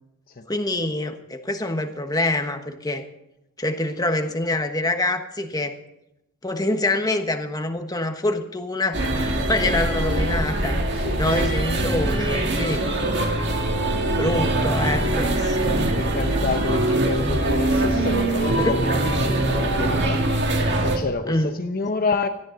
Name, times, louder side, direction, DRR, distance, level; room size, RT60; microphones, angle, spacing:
voice 1, 0.5-3.0 3.6-5.8 6.4-9.0 9.5-10.8 11.2-12.8 14.2-16.0 18.5-18.7 21.3-21.5, left 2 dB, 15° left, 1.3 m, -25 dB
sound 1, 8.9-21.0, right 1 dB, 55° right, 2.2 m, -23 dB
voice 2, 11.0-11.5 11.8-11.9 12.2-12.3 12.6-12.9 15.3-15.4 15.9-20.3 20.8-22.3, left 3 dB, 45° left, 0.9 m, -29 dB
18.5 x 13.5 x 4.0 m
head